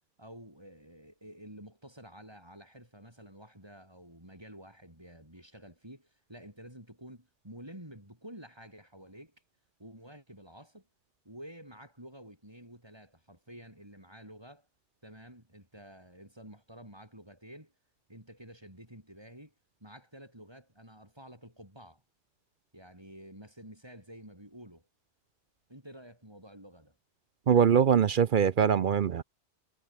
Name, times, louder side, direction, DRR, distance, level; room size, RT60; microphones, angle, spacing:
voice 1, 0.2-9.4 9.8-10.9 11.2-14.7 15.0-17.7 18.1-19.5 19.8-22.0 22.7-24.9 25.7-27.0, equal, 20° right, 6.2 m, -50 dB
voice 2, 27.5-29.2, right 8 dB, 55° right, 0.7 m, -23 dB
omnidirectional pair, 1.2 m